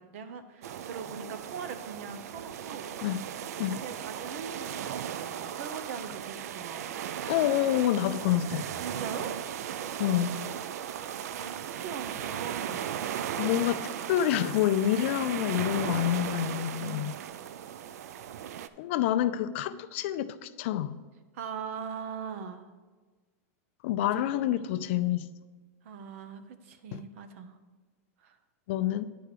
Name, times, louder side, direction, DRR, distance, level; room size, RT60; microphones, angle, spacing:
voice 1, 0.0-2.9 3.8-7.2 8.8-9.4 11.3-12.9 16.8-17.1 21.3-22.7 24.0-24.6 25.8-27.6 28.2-28.4, right 6 dB, 55° right, 10 dB, 0.8 m, -41 dB
sound 1, 0.6-18.7, right 9 dB, 75° right, 0.5 m, -37 dB
voice 2, 7.3-8.7 10.0-10.4 13.4-17.1 18.8-21.0 23.8-25.3 26.9-27.0 28.7-29.1, left 12 dB, 50° left, 12 dB, 0.4 m, -27 dB
10.0 x 4.7 x 6.7 m, 1.3 s
supercardioid pair, 165°, 9 cm